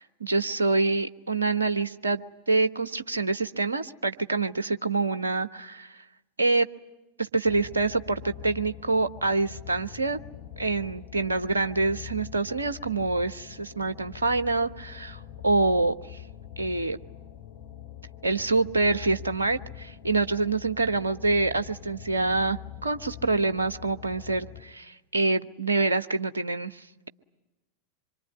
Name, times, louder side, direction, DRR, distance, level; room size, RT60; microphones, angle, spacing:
voice 1, 0.0-6.0 6.4-6.7 7.2-10.2 10.6-15.9 16.6-17.0 18.2-27.1, right 3 dB, 75° right, 10 dB, 1.0 m, -26 dB
sound 1, 7.4-24.6, left 12 dB, 55° left, 7.2 m, -44 dB
26.0 x 23.5 x 9.5 m, 1.0 s
figure-of-eight pair, 90°, 0 cm